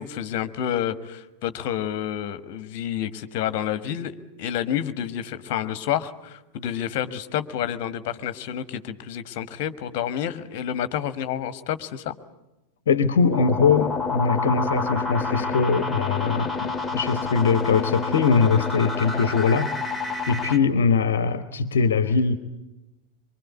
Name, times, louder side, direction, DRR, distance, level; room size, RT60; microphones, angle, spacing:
voice 1, 0.0-12.1, left 10 dB, 45° left, 13 dB, 1.4 m, -29 dB
voice 2, 12.9-19.7 20.3-22.4, left 5 dB, 60° left, 12 dB, 1.0 m, -21 dB
sound 1, 13.3-20.6, left 3 dB, 5° left, 2.0 m, -28 dB
24.0 x 24.0 x 8.3 m, 1.0 s
figure-of-eight pair, 90°, 0 cm